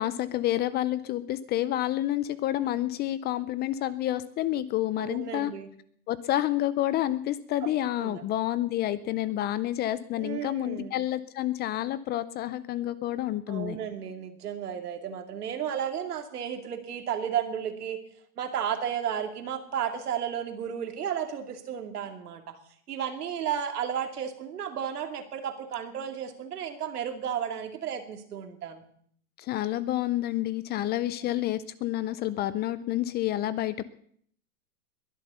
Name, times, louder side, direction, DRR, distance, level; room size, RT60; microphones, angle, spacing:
voice 1, 0.0-5.5 6.1-13.8 29.4-33.8, left 13 dB, 20° left, 17 dB, 0.5 m, -29 dB
voice 2, 5.0-5.7 7.6-7.7 8.0-8.2 10.2-10.9 13.5-18.0 18.4-22.6 22.9-28.8, right 8 dB, 85° right, 6 dB, 2.7 m, -33 dB
21.5 x 8.0 x 7.0 m, 0.63 s
hypercardioid pair, 130°, 45 cm